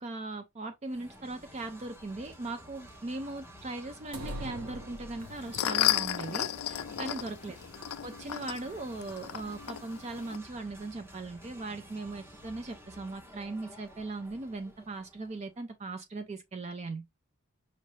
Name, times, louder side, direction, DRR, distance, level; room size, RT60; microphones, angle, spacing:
voice 1, 0.0-7.6 8.0-17.1, right 2 dB, 30° right, 0.4 m, -39 dB
sound 1, 0.8-15.5, equal, 10° right, 0.8 m, -52 dB
sound 2, 4.1-5.7, right 1 dB, 90° right, 1.0 m, -41 dB
sound 3, 5.2-10.4, left 12 dB, 85° left, 0.4 m, -33 dB
5.4 x 2.6 x 3.1 m
head